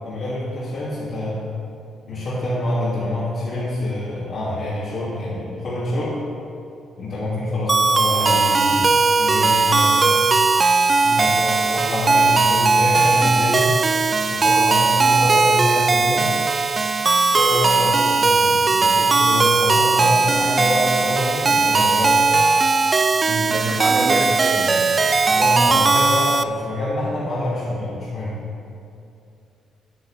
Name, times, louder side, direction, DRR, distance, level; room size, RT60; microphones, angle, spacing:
voice 1, 0.0-1.4 2.1-6.2 7.0-8.9 9.2-10.2 11.2-13.8 14.3-16.3 17.3-22.3 25.3-28.4, left 1 dB, 55° left, -10 dB, 2.8 m, -26 dB
sound 1, 7.7-26.4, right 4 dB, 30° right, 0.4 m, -18 dB
voice 2, 23.3-24.7, right 2 dB, 65° right, -3 dB, 2.5 m, -26 dB
9.8 x 9.7 x 4.4 m, 2.6 s
cardioid pair, 90°, 0 cm